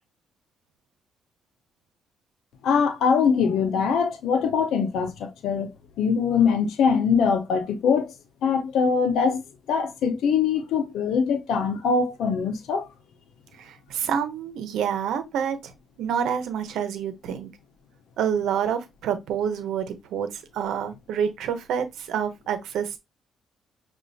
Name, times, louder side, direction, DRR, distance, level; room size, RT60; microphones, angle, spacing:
voice 1, 2.6-8.1 8.4-9.4 9.7-12.9, left 6 dB, 80° left, 0.8 m, -23 dB
voice 2, 13.6-15.7 16.0-17.5 18.2-23.0, right 8 dB, 80° right, 1.0 m, -28 dB
6.3 x 2.6 x 2.7 m
cardioid pair, 90°, 0 cm